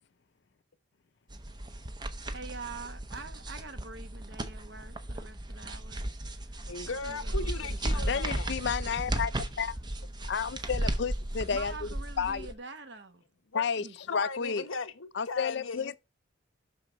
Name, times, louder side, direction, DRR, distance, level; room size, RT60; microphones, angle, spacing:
sound 1, 1.3-12.5, right 1 dB, 20° right, 0.7 m, -35 dB
voice 1, 2.3-6.0 6.4-8.4 11.5-13.2 13.8-14.0, right 3 dB, 60° right, 1.1 m, -46 dB
voice 2, 6.7-8.5 13.5-13.6 14.1-16.0, left 4 dB, 90° left, 1.2 m, -37 dB
voice 3, 8.1-9.3 9.6-9.8 10.3-11.9 12.2-12.5 13.5-13.8 14.1-14.6 15.2-15.9, left 6 dB, 55° left, 0.4 m, -31 dB
7.6 x 6.3 x 4.7 m
head